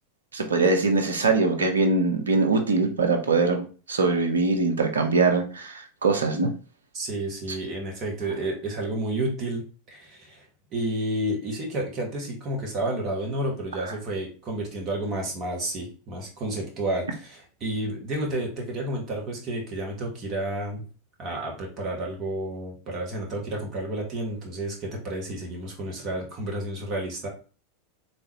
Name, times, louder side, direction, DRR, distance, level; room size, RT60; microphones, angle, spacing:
voice 1, 0.3-6.5 7.5-7.6, right 3 dB, 75° right, 4 dB, 0.7 m, -22 dB
voice 2, 6.9-10.4 10.7-20.8 21.2-27.3, right 1 dB, 35° right, 0 dB, 1.4 m, -31 dB
3.6 x 2.9 x 3.0 m, 0.37 s
figure-of-eight pair, 85°, 0 cm